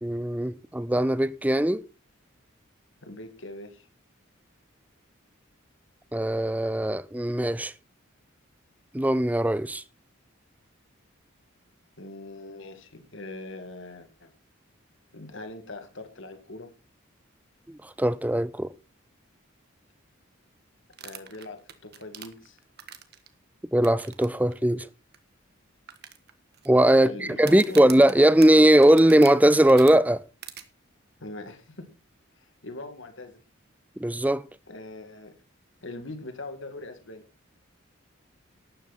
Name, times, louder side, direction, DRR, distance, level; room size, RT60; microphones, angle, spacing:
voice 1, 0.0-1.8 6.1-7.7 8.9-9.8 17.7-18.7 23.7-24.9 26.7-30.2 34.0-34.4, right 1 dB, 10° right, 0.5 m, -20 dB
voice 2, 3.0-3.9 12.0-14.3 15.1-16.7 21.0-22.6 26.9-27.8 31.2-31.9 32.4-33.4 34.7-35.3 35.8-37.2, left 2 dB, 65° left, 2.3 m, -41 dB
sound 1, 20.9-23.3 23.8-24.3 24.5-24.6 25.1-25.2 25.9-26.7 27.4-29.9 30.4-30.6, right 10 dB, 50° right, 1.6 m, -42 dB
12.5 x 11.0 x 4.3 m
head